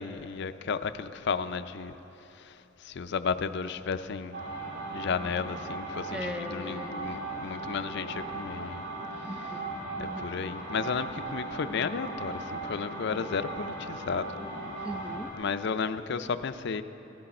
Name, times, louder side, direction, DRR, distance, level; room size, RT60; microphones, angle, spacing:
voice 1, 0.0-2.0 2.4-4.4 4.9-8.9 10.0-14.3 15.4-16.8, left 5 dB, 60° left, 11 dB, 0.5 m, -33 dB
sound 1, 4.3-15.3, right 2 dB, 70° right, 3.8 m, -38 dB
voice 2, 6.1-7.2 9.3-10.3 14.8-15.3, equal, 5° right, 6 dB, 0.6 m, -39 dB
17.0 x 13.0 x 4.3 m, 3.0 s
head